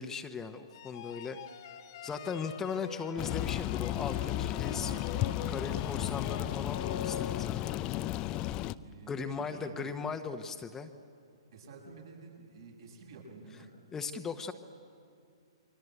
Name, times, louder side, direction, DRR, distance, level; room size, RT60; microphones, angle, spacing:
voice 1, 0.0-1.4 2.0-7.8 9.1-10.9 13.9-14.5, left 5 dB, 15° left, 6 dB, 1.2 m, -38 dB
sound 1, 0.7-7.9, left 9 dB, 50° left, 1.6 m, -44 dB
sound 2, 3.2-8.7, left 14 dB, 30° left, 0.6 m, -34 dB
voice 2, 8.8-9.9 11.5-13.7, right 3 dB, 65° right, 0 dB, 7.5 m, -50 dB
29.0 x 23.5 x 8.0 m, 2.4 s
figure-of-eight pair, 120°, 3 cm